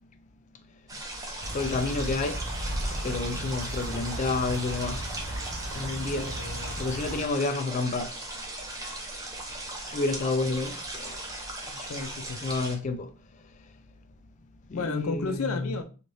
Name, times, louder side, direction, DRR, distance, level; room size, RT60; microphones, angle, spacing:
sound 1, 0.9-12.7, right 1 dB, 15° right, 0.6 m, -38 dB
sound 2, 1.4-7.2, right 1 dB, 65° right, 0.6 m, -35 dB
voice 1, 1.5-2.4 3.0-5.0 5.7-6.3 6.8-8.1 9.9-11.2 11.7-11.9 12.4-13.1 14.7-15.8, left 3 dB, 35° left, 0.3 m, -30 dB
voice 2, 6.2-6.8 11.9-12.4 14.7-15.8, left 3 dB, 90° left, 0.5 m, -33 dB
3.2 x 2.5 x 2.7 m
head